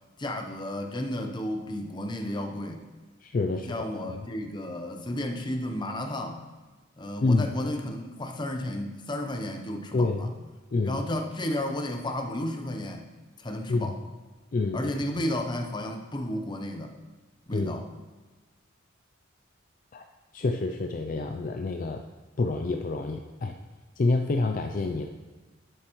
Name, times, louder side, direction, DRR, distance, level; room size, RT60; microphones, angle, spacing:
voice 1, 0.2-2.8 3.5-6.4 7.0-10.3 10.8-13.1 13.4-13.9 14.7-16.9 17.5-17.8, left 1 dB, 20° left, 4 dB, 0.7 m, -32 dB
voice 2, 3.2-4.2 7.2-7.5 9.9-10.3 10.7-11.0 13.7-13.9 14.5-14.9 17.5-17.8 19.9-20.0 20.3-22.0 22.4-23.5 24.0-25.1, left 3 dB, 40° left, 5 dB, 0.4 m, -27 dB
11.0 x 7.5 x 3.1 m, 1.3 s
head